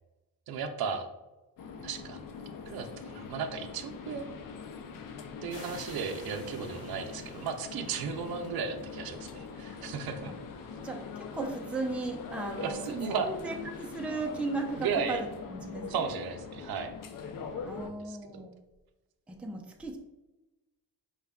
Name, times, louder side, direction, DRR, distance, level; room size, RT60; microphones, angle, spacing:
voice 1, 0.5-1.1 1.8-2.2 2.7-4.3 5.4-10.3 12.6-13.3 14.8-15.2 15.9-16.9 17.9-18.4, right 6 dB, 70° right, 6 dB, 0.5 m, -35 dB
sound 1, 1.6-17.9, left 5 dB, 60° left, 0.5 m, -43 dB
sound 2, 5.5-8.8, left 2 dB, 80° left, 1.3 m, -51 dB
voice 2, 10.8-16.1 17.7-18.5 19.3-20.0, right 3 dB, 5° right, 1 dB, 0.4 m, -36 dB
4.6 x 2.2 x 3.4 m, 1.1 s
wide cardioid pair, 120°, 38 cm